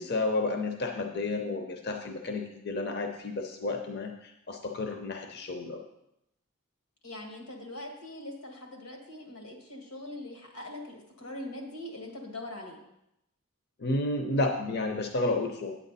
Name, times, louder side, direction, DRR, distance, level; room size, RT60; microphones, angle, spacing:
voice 1, 0.0-5.8 13.8-15.7, left 2 dB, 50° left, 4 dB, 0.7 m, -31 dB
voice 2, 7.0-12.8, left 1 dB, 90° left, 2 dB, 2.0 m, -42 dB
8.9 x 8.4 x 4.1 m, 0.84 s
head